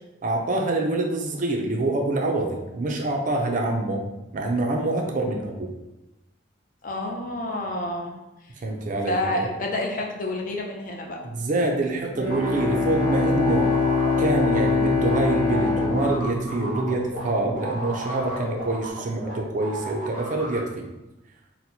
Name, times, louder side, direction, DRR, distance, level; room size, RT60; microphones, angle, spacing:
voice 1, 0.2-4.0 4.3-5.7 8.6-9.5 11.2-13.7 14.2-20.9, right 2 dB, 40° right, 1 dB, 0.4 m, -26 dB
voice 2, 6.8-8.1 9.1-11.3, left 1 dB, 40° left, 0 dB, 0.5 m, -29 dB
Bowed string instrument, 12.2-17.3, left 4 dB, 5° right, 0.7 m, -24 dB
sound 1, 12.3-19.3 19.6-20.6, equal, 60° left, 1.1 m, -33 dB
4.2 x 2.1 x 2.7 m, 0.99 s
head